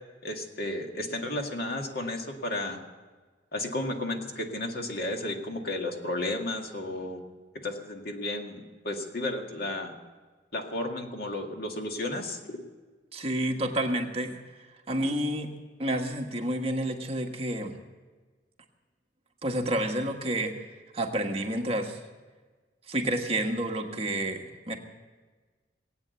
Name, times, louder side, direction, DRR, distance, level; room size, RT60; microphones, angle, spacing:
voice 1, 0.2-2.8 3.5-7.2 7.6-9.9 10.5-12.6, left 1 dB, 60° left, 3 dB, 2.0 m, -33 dB
voice 2, 13.1-14.4 14.9-15.5 15.8-17.7 19.4-20.5 20.9-22.0 22.9-24.8, right 1 dB, 35° right, 2 dB, 1.4 m, -29 dB
20.0 x 8.7 x 8.2 m, 1.4 s
head